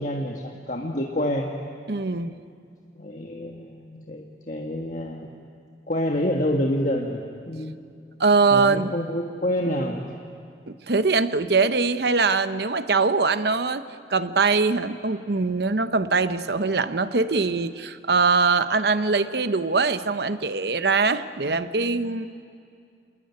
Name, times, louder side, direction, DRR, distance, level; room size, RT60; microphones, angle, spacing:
voice 1, 0.0-1.5 3.0-5.3 5.9-7.8 8.5-10.1, left 1 dB, 45° left, 1 dB, 1.5 m, -27 dB
voice 2, 1.9-2.3 8.2-8.9 10.7-13.8 14.1-22.3, right 4 dB, 65° right, 12 dB, 0.9 m, -22 dB
27.5 x 20.0 x 9.7 m, 2.4 s
head